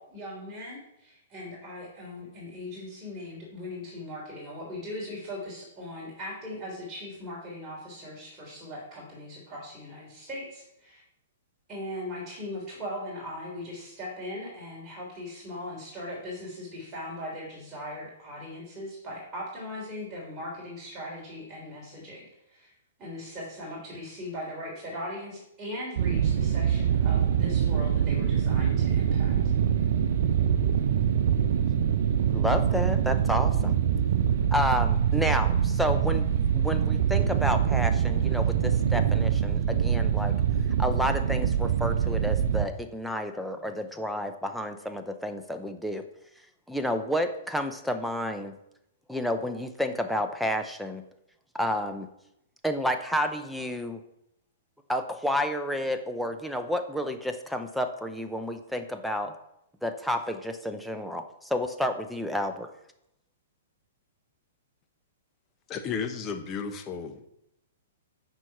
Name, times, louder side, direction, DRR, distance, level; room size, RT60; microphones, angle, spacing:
voice 1, 0.0-11.0 11.7-22.7 23.0-29.3, left 1 dB, 20° right, -5 dB, 3.5 m, -39 dB
sound 1, 26.0-42.7, right 8 dB, 60° right, 0.7 m, -24 dB
voice 2, 32.3-33.7 34.5-36.3 36.5-40.3 40.8-46.1 46.7-48.6 49.1-51.0 51.5-52.1 52.6-54.0 54.9-59.4 59.8-62.7, equal, ahead, 5 dB, 0.7 m, -30 dB
voice 3, 65.7-67.3, left 6 dB, 30° left, 7 dB, 1.1 m, -33 dB
10.0 x 4.6 x 5.8 m, 0.79 s
hypercardioid pair, 120°, 0 cm